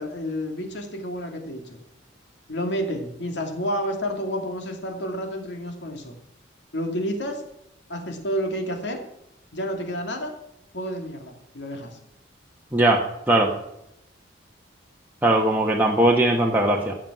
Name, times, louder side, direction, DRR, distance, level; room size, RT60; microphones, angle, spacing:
voice 1, 0.0-1.8 2.5-6.2 6.7-7.4 7.9-9.0 9.5-10.3 10.7-12.0, equal, 65° left, 4 dB, 2.4 m, -30 dB
voice 2, 15.2-16.9, right 1 dB, 10° right, -2 dB, 1.1 m, -19 dB
14.5 x 7.6 x 6.0 m, 0.81 s
head